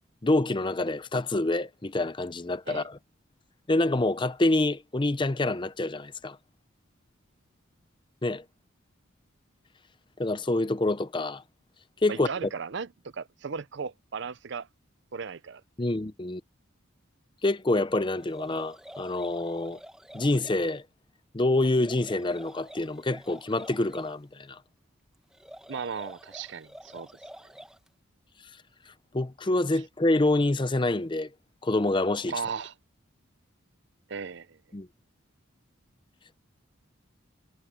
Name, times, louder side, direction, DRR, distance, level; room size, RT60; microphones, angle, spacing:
voice 1, 0.2-3.0 3.7-6.4 8.2-8.4 10.2-11.4 12.0-12.5 15.8-16.4 17.4-19.8 20.1-20.8 21.3-24.6 29.1-31.3 31.6-32.3 34.7-34.9, left 2 dB, 25° left, 0.6 m, -26 dB
voice 2, 12.1-14.7 15.1-15.6 25.7-27.1 32.3-32.7 34.1-34.6, right 5 dB, 60° right, 0.6 m, -36 dB
sound 1, 18.2-20.6 21.7-24.1 25.3-27.9, equal, 5° right, 1.0 m, -48 dB
head